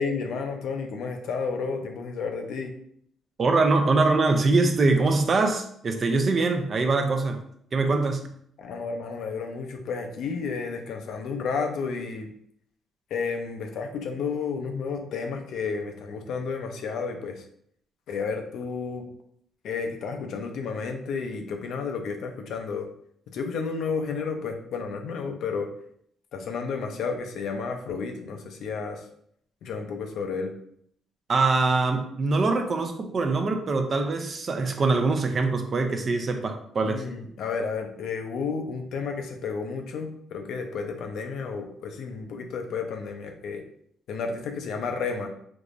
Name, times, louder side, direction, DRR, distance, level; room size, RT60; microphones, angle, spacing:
voice 1, 0.0-2.7 8.6-12.3 13.1-17.4 18.1-19.1 19.6-22.9 23.3-25.7 26.3-29.0 29.6-30.5 36.8-43.6 44.1-45.3, left 5 dB, 75° left, 4 dB, 0.5 m, -31 dB
voice 2, 3.4-7.4 7.7-8.3 31.3-37.0, right 3 dB, 40° right, 6 dB, 0.5 m, -23 dB
3.5 x 2.9 x 2.5 m, 0.67 s
cardioid pair, 90°, 0 cm